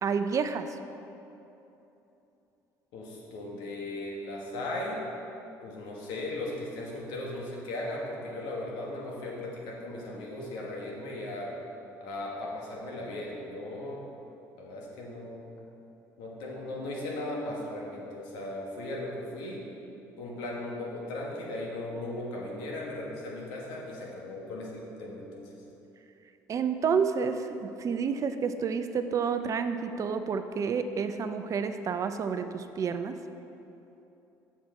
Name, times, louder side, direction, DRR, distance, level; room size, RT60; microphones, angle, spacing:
voice 1, 0.0-0.7 26.5-33.1, right 6 dB, 45° right, 9 dB, 0.4 m, -29 dB
voice 2, 2.9-5.1 5.6-11.5 12.0-14.1 14.6-15.5 16.2-19.7 20.2-25.5, left 1 dB, 75° left, -2 dB, 1.5 m, -37 dB
7.1 x 5.9 x 4.4 m, 2.9 s
supercardioid pair, 75°, 8 cm